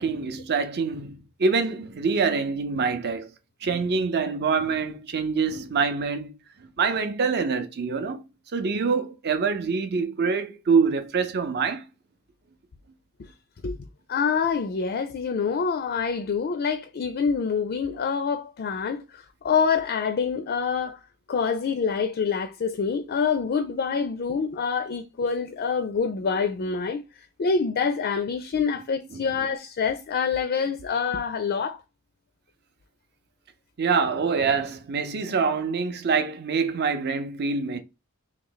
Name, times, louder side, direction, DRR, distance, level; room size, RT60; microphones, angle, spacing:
voice 1, 0.0-3.3 3.6-6.3 6.8-8.2 8.5-11.8 29.1-29.2 33.8-37.8, right 5 dB, 50° right, 0.5 m, -25 dB
voice 2, 14.1-21.0 21.3-27.0 27.4-31.8, left 5 dB, 45° left, 0.4 m, -26 dB
3.1 x 2.9 x 3.8 m
head